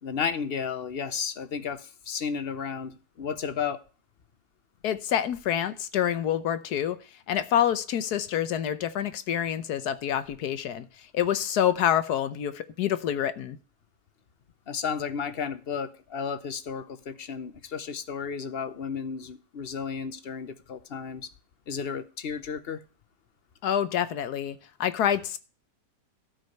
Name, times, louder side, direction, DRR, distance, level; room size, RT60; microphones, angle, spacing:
voice 1, 0.0-3.8 14.7-21.3 21.7-22.8, left 6 dB, 45° left, 0.9 m, -33 dB
voice 2, 4.8-7.0 7.3-10.9 11.1-13.6 23.6-25.4, left 10 dB, 75° left, 1.4 m, -27 dB
12.5 x 5.0 x 6.5 m
omnidirectional pair, 1.7 m